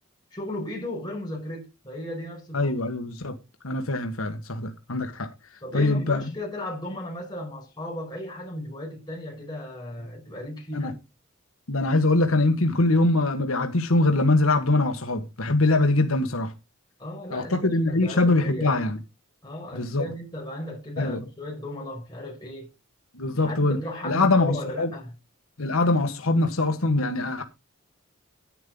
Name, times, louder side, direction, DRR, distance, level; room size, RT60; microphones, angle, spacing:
voice 1, 0.3-2.8 5.6-10.9 17.0-18.8 19.4-22.7 23.3-25.1, left 1 dB, 20° left, 5.2 m, -35 dB
voice 2, 2.5-3.4 3.6-5.3 5.7-6.2 10.7-10.9 11.7-16.5 17.3-19.0 19.7-20.1 21.0-21.2 23.1-23.8 24.0-24.9 25.6-27.4, left 2 dB, 80° left, 1.5 m, -23 dB
10.5 x 9.9 x 3.9 m
head